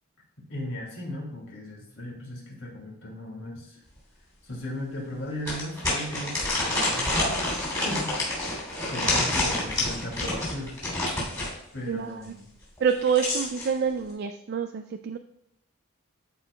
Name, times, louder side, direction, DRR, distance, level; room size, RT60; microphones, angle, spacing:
voice 1, 0.5-3.8 4.4-7.3 7.7-8.3 8.8-10.8 11.7-12.5, left 1 dB, 60° left, -2 dB, 2.5 m, -37 dB
sound 1, 4.0-4.1 4.5-4.6 5.4-11.5 12.8-13.7, left 2 dB, 15° left, 2.9 m, -28 dB
voice 2, 11.9-12.2 12.8-15.2, right 7 dB, 50° right, 7 dB, 0.3 m, -27 dB
13.5 x 4.6 x 2.3 m, 0.81 s
head